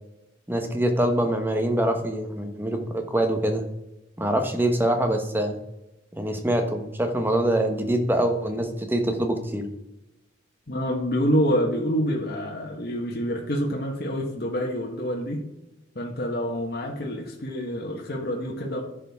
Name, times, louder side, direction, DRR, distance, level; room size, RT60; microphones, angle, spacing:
voice 1, 0.5-3.6 4.2-5.6 6.1-9.6, right 1 dB, 10° right, 5 dB, 1.0 m, -24 dB
voice 2, 10.7-15.4 15.9-18.8, equal, 55° left, -1 dB, 1.3 m, -27 dB
10.5 x 6.3 x 3.6 m, 0.91 s
head